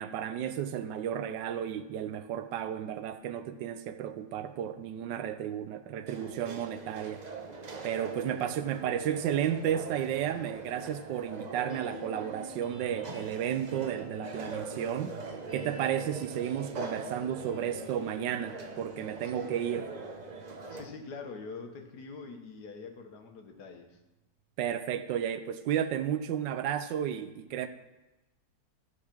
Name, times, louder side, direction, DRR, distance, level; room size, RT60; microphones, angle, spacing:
voice 1, 0.0-7.2 7.8-15.2 15.5-19.9 24.6-27.7, right 9 dB, 90° right, 1.3 m, -33 dB
sound 1, 6.1-20.9, right 3 dB, 45° right, 0.5 m, -42 dB
sound 2, 11.7-24.0, right 1 dB, 5° right, 2.0 m, -52 dB
voice 2, 20.7-24.0, left 4 dB, 65° left, 1.6 m, -44 dB
13.0 x 4.9 x 5.9 m
omnidirectional pair, 1.9 m